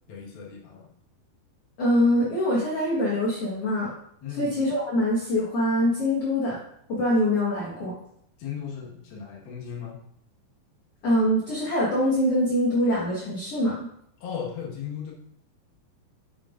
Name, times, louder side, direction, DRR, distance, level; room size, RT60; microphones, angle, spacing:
voice 1, 0.1-0.9 4.2-4.5 8.4-10.0 14.2-15.1, left 7 dB, 75° left, -3 dB, 3.4 m, -36 dB
voice 2, 1.8-3.9 4.4-6.6 6.9-7.9 11.0-13.9, left 1 dB, 50° left, -6 dB, 2.0 m, -24 dB
10.0 x 7.0 x 2.5 m, 0.73 s
omnidirectional pair, 4.3 m